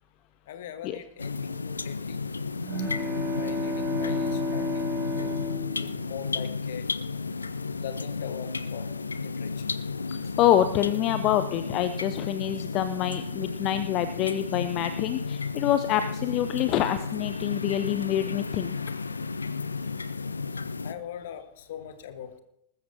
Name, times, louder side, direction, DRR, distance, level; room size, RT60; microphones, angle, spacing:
voice 1, 0.5-2.3 3.3-5.4 5.8-6.9 7.8-8.9 9.2-9.7 20.8-22.4, left 9 dB, 55° left, 10 dB, 1.4 m, -41 dB
sound 1, 1.2-20.9, left 4 dB, 75° left, 0.5 m, -33 dB
sound 2, 2.6-6.6, left 2 dB, 25° right, 2.9 m, -31 dB
voice 2, 10.1-18.7, left 11 dB, 40° left, 11 dB, 0.6 m, -26 dB
20.5 x 13.5 x 2.8 m, 0.77 s
figure-of-eight pair, 90°, 0 cm